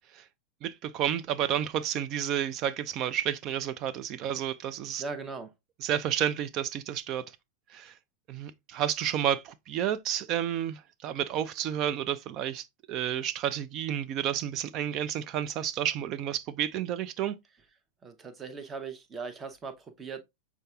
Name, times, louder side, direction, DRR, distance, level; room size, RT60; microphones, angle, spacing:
voice 1, 0.6-5.0 5.8-7.2 7.7-7.9 8.3-17.3, right 10 dB, 35° right, 0.4 m, -31 dB
voice 2, 5.0-5.5 18.0-20.3, right 4 dB, 20° right, 0.8 m, -39 dB
6.5 x 3.6 x 2.3 m
figure-of-eight pair, 90°, 0 cm